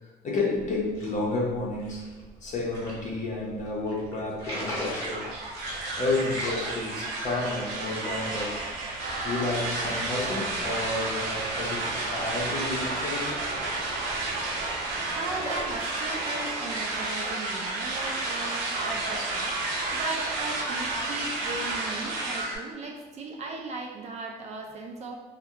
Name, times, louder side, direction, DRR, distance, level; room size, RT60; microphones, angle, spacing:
voice 1, 0.0-2.0 2.4-5.3 6.0-8.6 9.2-13.4, left 2 dB, 45° left, -3 dB, 0.6 m, -31 dB
sound 1, 0.6-15.8, equal, 20° left, 0.9 m, -42 dB
sound 2, 4.9-22.6, right 2 dB, 80° right, 0.6 m, -31 dB
voice 2, 15.1-25.2, right 3 dB, 40° right, 1 dB, 0.4 m, -37 dB
2.3 x 2.1 x 2.8 m, 1.3 s
cardioid pair, 110°, 17 cm